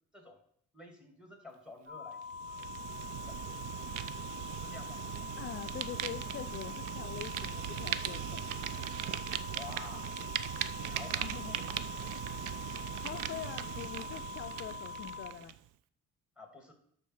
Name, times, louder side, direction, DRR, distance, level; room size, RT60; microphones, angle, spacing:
voice 1, 0.7-3.6 4.6-5.0 9.5-10.2 10.8-11.8 16.4-16.7, left 3 dB, 5° right, 3 dB, 2.5 m, -51 dB
sound 1, 1.9-15.3, left 5 dB, 35° right, 3.9 m, -44 dB
Fire, 2.2-15.6, right 12 dB, 85° right, 0.5 m, -39 dB
voice 2, 5.4-8.6 11.2-11.6 13.0-15.6, left 11 dB, 45° left, 9 dB, 0.4 m, -44 dB
11.5 x 4.1 x 6.3 m, 0.66 s
cardioid pair, 90°, 30 cm